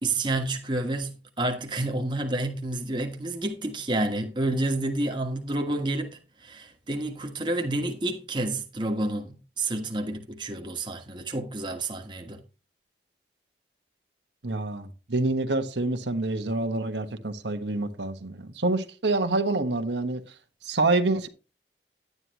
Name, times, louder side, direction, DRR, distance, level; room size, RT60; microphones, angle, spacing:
voice 1, 0.0-12.4, right 2 dB, 25° right, 1.3 m, -29 dB
voice 2, 14.4-20.2 20.6-21.3, right 2 dB, 85° right, 1.3 m, -27 dB
11.0 x 9.7 x 3.0 m
head